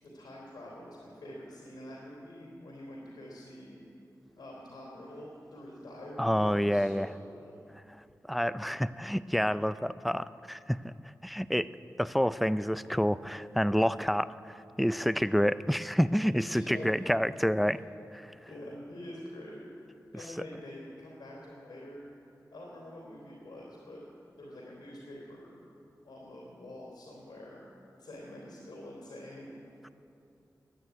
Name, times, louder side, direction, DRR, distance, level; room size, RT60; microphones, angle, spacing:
voice 1, 0.0-3.8 4.4-7.6 16.5-16.9 18.4-19.6 20.1-22.1 22.5-24.0 24.4-25.6 26.0-27.6 28.0-29.6, left 1 dB, 90° left, -4 dB, 3.0 m, -46 dB
voice 2, 6.2-7.1 8.3-10.9 11.2-11.7 12.0-17.8 18.1-18.3, equal, ahead, 15 dB, 0.4 m, -28 dB
12.0 x 9.3 x 9.6 m, 2.8 s
cardioid pair, 55°, 7 cm